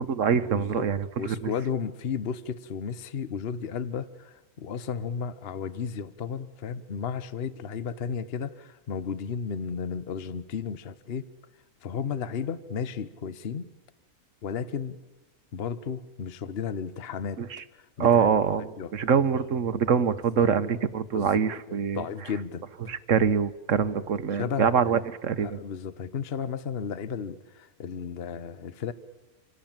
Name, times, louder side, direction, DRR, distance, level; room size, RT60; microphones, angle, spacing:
voice 1, 0.0-1.5 17.4-17.6 18.0-22.0 22.9-25.6, right 7 dB, 60° right, 13 dB, 1.3 m, -25 dB
voice 2, 0.5-0.9 1.2-11.3 11.8-13.7 14.4-15.0 15.5-17.4 18.0-18.3 18.8-18.9 20.4-20.5 21.1-21.4 21.9-22.6 24.0-24.1 24.3-25.0 25.4-28.9, left 6 dB, 45° left, 14 dB, 1.1 m, -33 dB
27.5 x 18.0 x 8.9 m, 1.1 s
omnidirectional pair, 1.6 m